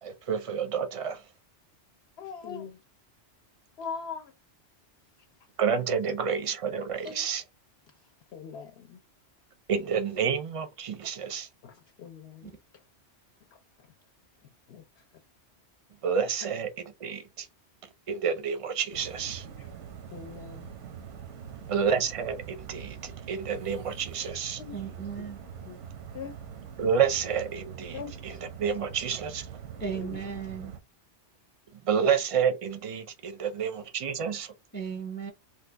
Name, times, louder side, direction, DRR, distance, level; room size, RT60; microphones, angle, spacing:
voice 1, 0.0-1.2 5.6-7.4 9.7-11.5 16.0-16.7 17.0-17.5 18.1-19.4 21.6-24.6 26.8-28.3 28.6-29.5 31.8-34.5, right 7 dB, 45° right, 0.5 m, -29 dB
voice 2, 2.2-2.8 3.8-4.3 7.0-7.2 8.3-9.0 11.6-12.5 13.5-13.6 14.7-15.0 19.6-19.7 20.1-20.7 24.6-24.8 25.7-25.9 26.1-26.3 27.9-28.4 29.9-30.2, left 6 dB, 65° left, 0.8 m, -41 dB
sound 1, 18.9-30.8, right 8 dB, 85° right, 1.0 m, -43 dB
voice 3, 24.7-25.4 29.8-30.7 34.7-35.3, right 6 dB, 15° left, 0.4 m, -36 dB
3.3 x 2.2 x 3.3 m
omnidirectional pair, 1.2 m